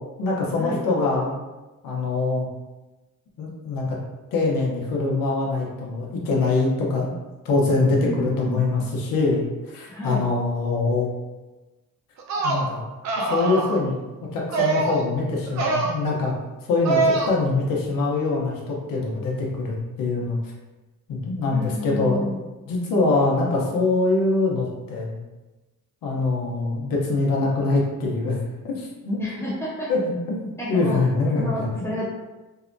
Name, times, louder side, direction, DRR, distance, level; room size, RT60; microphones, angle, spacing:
voice 1, 0.2-1.4 1.8-2.5 3.4-4.0 4.3-7.1 7.4-11.1 12.4-12.8 13.2-14.0 14.3-16.3 16.7-20.4 21.1-22.3 22.7-25.2 26.0-28.4 28.6-29.2 29.9-30.0 30.3-31.9, left 3 dB, 85° left, -2 dB, 0.7 m, -23 dB
voice 2, 8.0-8.6 9.9-10.3 21.5-22.4 29.2-29.9 30.6-31.0 31.3-32.1, left 1 dB, 10° left, -8 dB, 1.0 m, -30 dB
sound 1, 12.2-12.6 13.0-13.8 14.5-15.0 15.5-15.9 16.8-17.3, right 3 dB, 55° right, 0.5 m, -23 dB
2.7 x 2.1 x 2.5 m, 1.1 s
cardioid pair, 95°, 33 cm